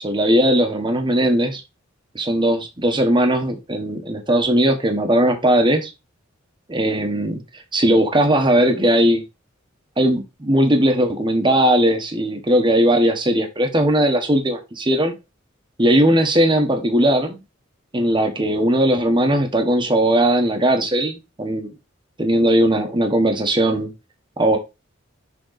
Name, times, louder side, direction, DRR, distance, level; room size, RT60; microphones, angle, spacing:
voice 1, 0.0-1.6 2.2-5.9 6.7-7.4 7.7-9.2 10.0-15.1 15.8-17.4 17.9-21.7 22.2-23.9 24.4-24.6, right 1 dB, 25° right, 1.1 m, -18 dB
6.6 x 3.8 x 3.9 m
head